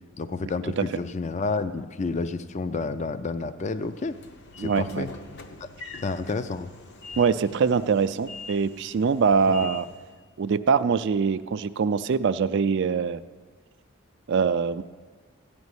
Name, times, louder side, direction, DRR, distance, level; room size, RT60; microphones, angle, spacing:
voice 1, 0.2-4.2 4.6-5.1 5.6-5.7 6.0-6.7, left 3 dB, 35° left, 11 dB, 0.4 m, -30 dB
Train / Sliding door, 3.7-10.2, left 3 dB, 55° left, 0.8 m, -44 dB
voice 2, 4.6-5.1 7.2-9.9 10.4-13.2 14.3-14.8, right 5 dB, 55° right, 12 dB, 0.4 m, -23 dB
15.5 x 5.2 x 9.7 m, 1.5 s
head